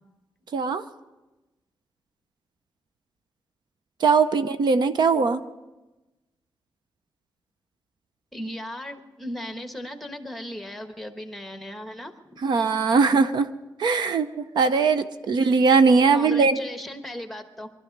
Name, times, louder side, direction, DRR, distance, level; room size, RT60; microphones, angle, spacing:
voice 1, 0.5-0.8 4.0-5.4 12.4-13.5 13.8-16.6, right 4 dB, 70° right, 10 dB, 0.7 m, -20 dB
voice 2, 8.3-12.1 16.1-17.7, left 1 dB, ahead, 7 dB, 1.2 m, -36 dB
21.5 x 12.5 x 5.3 m, 1.1 s
wide cardioid pair, 135°, 8 cm